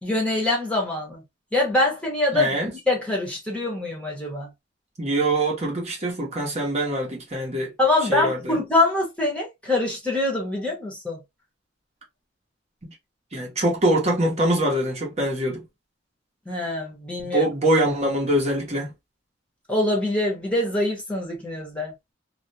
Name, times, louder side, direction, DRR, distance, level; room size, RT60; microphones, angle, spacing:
voice 1, 0.0-1.2 1.5-2.5 2.9-4.5 7.8-11.2 16.5-17.5 19.7-21.9, left 2 dB, 5° left, 0.9 m, -24 dB
voice 2, 2.3-2.7 5.0-7.7 8.1-8.6 12.9-13.0 13.3-15.6 17.3-18.9, right 1 dB, 35° right, 0.9 m, -23 dB
2.4 x 2.1 x 2.6 m
head